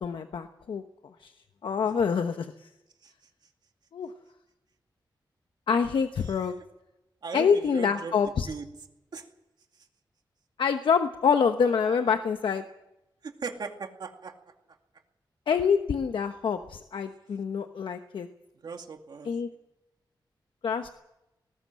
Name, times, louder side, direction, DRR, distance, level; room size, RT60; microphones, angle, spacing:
voice 1, 0.0-0.8 1.2-1.3 1.6-2.7 3.9-4.1 5.7-6.6 7.3-8.5 10.6-12.6 15.5-18.3 19.2-19.5 20.6-20.9, left 6 dB, 90° left, 7 dB, 1.1 m, -26 dB
voice 2, 6.2-6.6 7.2-8.1 8.4-8.7 9.1-9.3 11.8-12.0 13.2-14.3 18.6-19.4, right 5 dB, 60° right, 4 dB, 2.3 m, -38 dB
19.5 x 19.0 x 7.7 m, 0.93 s
wide cardioid pair, 175°, 8 cm